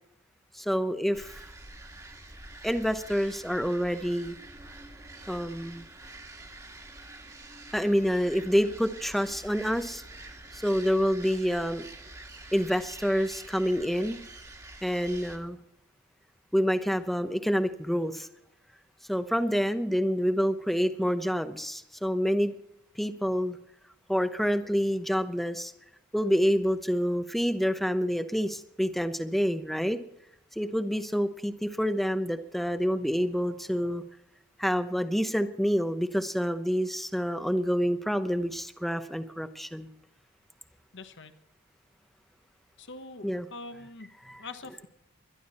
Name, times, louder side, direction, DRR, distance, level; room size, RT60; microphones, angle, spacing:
voice 1, 0.5-1.4 2.6-4.4 5.3-5.8 7.7-10.0 10.5-11.9 12.5-14.2 14.8-15.6 16.5-18.3 19.1-22.5 23.0-23.6 24.1-25.7 26.1-30.0 30.6-34.0 34.6-39.9 43.2-43.5 44.2-44.4, equal, ahead, 9 dB, 0.8 m, -27 dB
sound 1, 1.1-15.4, right 2 dB, 15° right, 1.8 m, -47 dB
voice 2, 40.9-41.3 42.8-44.1 44.4-44.9, left 3 dB, 55° left, 8 dB, 1.2 m, -43 dB
21.5 x 11.5 x 4.3 m, 0.82 s
head